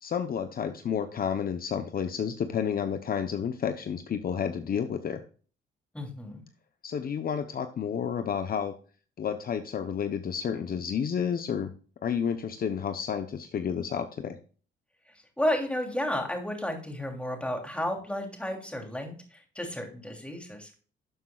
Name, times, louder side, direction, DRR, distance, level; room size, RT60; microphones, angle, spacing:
voice 1, 0.0-5.2 6.8-8.7 9.2-11.7 12.0-14.4, left 7 dB, 50° left, 8 dB, 0.8 m, -30 dB
voice 2, 5.9-6.4 15.1-20.7, left 1 dB, 5° left, 2 dB, 3.0 m, -32 dB
12.0 x 7.3 x 2.4 m, 0.39 s
cardioid pair, 90°, 20 cm